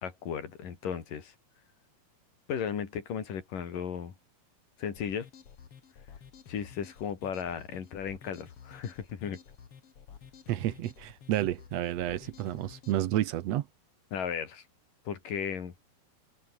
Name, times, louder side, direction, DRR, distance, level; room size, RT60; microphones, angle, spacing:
voice 1, 0.0-1.3 2.5-4.1 4.8-5.3 6.5-9.4 14.1-14.6 15.1-15.7, left 7 dB, 60° left, 4.6 m, -35 dB
sound 1, 4.9-13.1, left 7 dB, 45° left, 2.6 m, -52 dB
voice 2, 10.5-13.6, right 13 dB, 80° right, 1.5 m, -30 dB
omnidirectional pair, 4.3 m